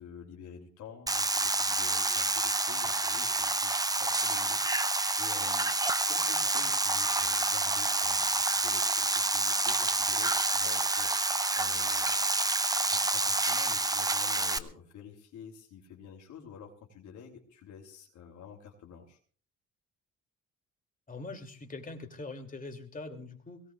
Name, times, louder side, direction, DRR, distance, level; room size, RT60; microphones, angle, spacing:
voice 1, 0.0-5.8 6.1-12.2 12.9-19.2, left 7 dB, 75° left, 0 dB, 3.1 m, -49 dB
sound 1, 1.1-14.6, right 2 dB, 10° right, 0.7 m, -28 dB
voice 2, 21.1-23.6, left 3 dB, 25° left, 4 dB, 2.7 m, -42 dB
22.5 x 17.5 x 2.4 m, 0.41 s
cardioid pair, 90°, 30 cm